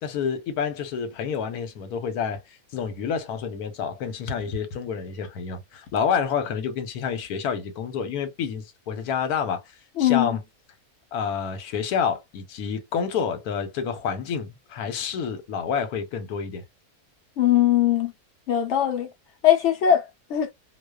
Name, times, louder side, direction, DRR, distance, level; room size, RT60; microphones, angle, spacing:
voice 1, 0.0-2.4 2.7-9.6 10.0-10.4 11.1-16.6, left 7 dB, 80° left, 1.2 m, -28 dB
voice 2, 10.0-10.4 17.4-18.1 18.5-19.1 19.4-20.0 20.3-20.5, left 11 dB, 60° left, 0.8 m, -20 dB
2.4 x 2.3 x 2.2 m
omnidirectional pair, 1.6 m